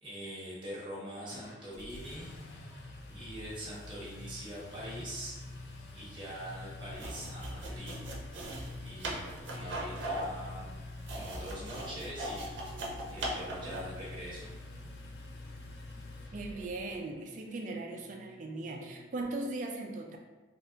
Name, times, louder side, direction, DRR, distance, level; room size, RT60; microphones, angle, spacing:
voice 1, 0.0-2.3 2.7-2.8 3.1-5.4 5.9-8.0 8.8-10.7 11.1-12.5 12.8-14.5, equal, 25° right, -7 dB, 1.1 m, -43 dB
Engine, 1.3-17.0, left 2 dB, 65° left, 0.4 m, -46 dB
sound 1, 6.9-14.0, right 1 dB, 90° right, 0.6 m, -39 dB
sound 2, 11.5-19.4, equal, 10° left, 0.9 m, -56 dB
voice 2, 16.3-20.2, right 2 dB, 45° right, 1 dB, 0.4 m, -38 dB
3.4 x 2.8 x 2.7 m, 1.2 s
head